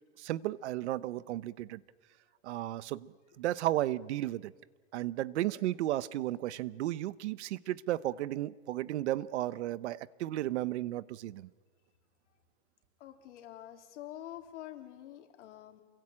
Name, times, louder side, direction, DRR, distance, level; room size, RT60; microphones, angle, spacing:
voice 1, 0.2-1.8 2.4-4.5 4.9-11.5, right 14 dB, 70° right, 1.0 m, -34 dB
voice 2, 13.0-15.8, left 12 dB, 75° left, 3.7 m, -47 dB
28.5 x 22.0 x 8.8 m
supercardioid pair, 175°, 36 cm